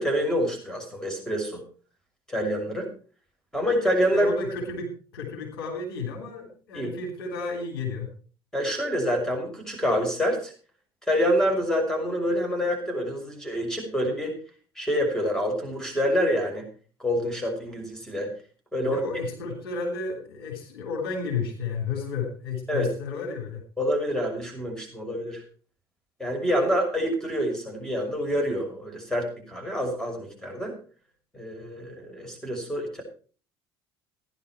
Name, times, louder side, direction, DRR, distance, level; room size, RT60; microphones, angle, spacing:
voice 1, 0.0-1.6 2.3-2.9 3.5-4.3 6.7-6.9 8.5-10.5 11.1-14.4 14.8-16.7 17.0-18.3 18.7-19.0 22.7-22.9 23.8-25.4 26.2-30.7 31.3-33.0, equal, 5° left, 2 dB, 6.2 m, -27 dB
voice 2, 4.1-8.1 18.7-23.6, left 4 dB, 75° left, 1 dB, 3.2 m, -32 dB
15.0 x 10.5 x 4.6 m, 0.39 s
figure-of-eight pair, 60°, 12 cm